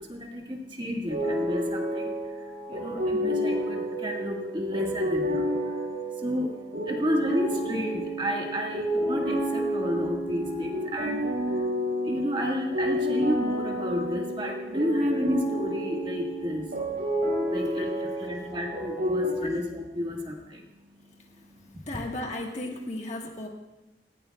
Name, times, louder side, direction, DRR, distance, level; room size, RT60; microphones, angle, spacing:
voice 1, 0.0-21.8, left 1 dB, 25° right, 0 dB, 1.6 m, -32 dB
sound 1, 1.1-19.3, equal, 65° right, 5.2 m, -30 dB
voice 2, 21.9-23.5, left 1 dB, 40° left, 1 dB, 1.5 m, -35 dB
18.5 x 16.0 x 2.3 m, 1.0 s
head